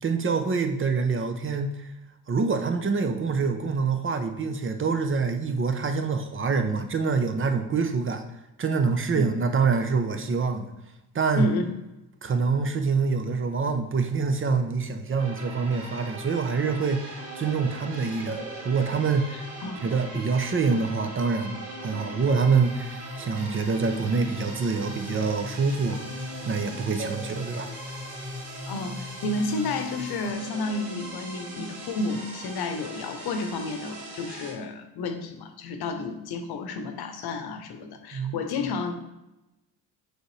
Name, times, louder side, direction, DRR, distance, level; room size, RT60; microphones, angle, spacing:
voice 1, 0.0-1.9 2.3-8.2 8.6-10.7 11.1-11.5 12.2-19.4 19.8-26.0 26.4-27.7 38.1-38.4, right 5 dB, 25° right, 6 dB, 0.8 m, -26 dB
sound 1, 15.2-34.5, right 2 dB, 85° right, 1.8 m, -40 dB
sound 2, 22.4-30.3, left 3 dB, 15° left, 1.1 m, -41 dB
voice 2, 29.2-38.9, left 3 dB, 55° left, 7 dB, 1.0 m, -31 dB
6.3 x 4.8 x 3.3 m, 0.96 s
hypercardioid pair, 60°, 46 cm